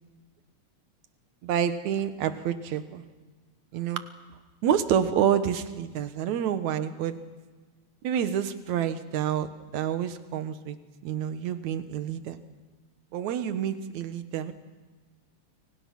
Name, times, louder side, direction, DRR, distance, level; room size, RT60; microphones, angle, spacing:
voice 1, 1.4-3.0 3.7-4.0 4.6-7.2 8.0-9.5 9.7-10.8 11.0-12.4 13.1-14.5, right 9 dB, 75° right, 10 dB, 2.6 m, -28 dB
29.5 x 24.5 x 6.0 m, 1.3 s
omnidirectional pair, 3.4 m